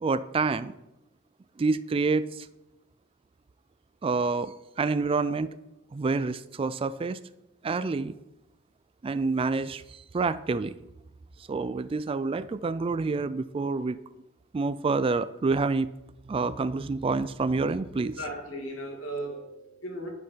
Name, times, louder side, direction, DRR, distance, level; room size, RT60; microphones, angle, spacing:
voice 1, 0.0-0.7 1.6-2.5 4.0-5.6 5.9-7.2 7.6-8.1 9.0-9.8 10.1-10.7 11.5-14.0 14.5-15.9 16.3-18.2, right 4 dB, 30° right, 14 dB, 0.3 m, -27 dB
voice 2, 18.2-20.1, right 1 dB, 90° left, 1 dB, 2.4 m, -36 dB
9.6 x 5.6 x 5.7 m, 0.92 s
head